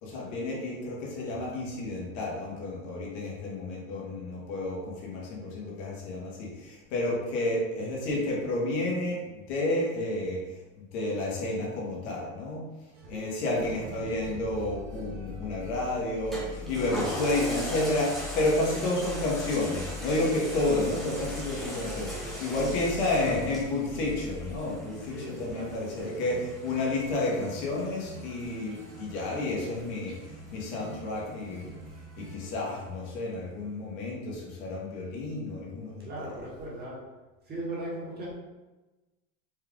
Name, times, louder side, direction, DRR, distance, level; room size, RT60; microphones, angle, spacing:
voice 1, 0.0-12.7 13.1-22.1 22.4-31.8 32.2-36.1, left 2 dB, 70° left, -3 dB, 1.4 m, -31 dB
sound 1, 12.9-32.5, right 2 dB, 85° right, 1.2 m, -48 dB
sound 2, 13.6-25.0, left 2 dB, 70° right, 0.6 m, -43 dB
Toilet flush, 16.3-31.1 31.6-31.7, equal, ahead, 1.1 m, -41 dB
voice 2, 16.6-17.3 18.7-18.9 21.6-22.6 25.1-26.2 36.0-37.0 37.4-38.3, right 1 dB, 25° right, -5 dB, 1.3 m, -40 dB
4.5 x 2.4 x 3.5 m, 1.1 s
supercardioid pair, 130°, 35 cm